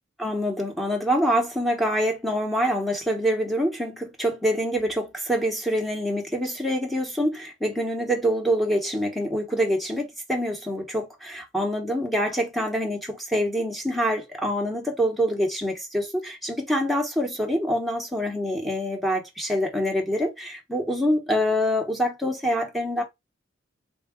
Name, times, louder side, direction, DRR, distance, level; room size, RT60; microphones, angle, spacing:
voice 1, 0.2-23.0, equal, ahead, 0.8 m, -25 dB
3.6 x 2.2 x 3.4 m
head